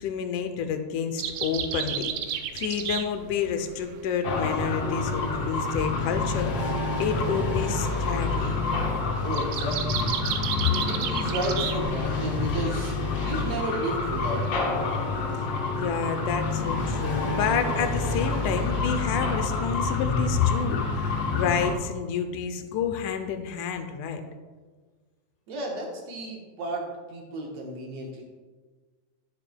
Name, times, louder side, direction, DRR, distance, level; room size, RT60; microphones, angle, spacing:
voice 1, 0.0-8.6 15.8-24.2, left 7 dB, 85° left, 7 dB, 2.1 m, -29 dB
sound 1, 1.2-15.4, right 8 dB, 80° right, 1.5 m, -35 dB
sound 2, 4.2-21.7, left 3 dB, 60° left, 2.0 m, -28 dB
voice 2, 9.2-10.2 10.7-14.8 25.5-28.2, right 1 dB, 65° right, 0 dB, 2.2 m, -33 dB
11.0 x 10.5 x 2.3 m, 1.4 s
omnidirectional pair, 3.5 m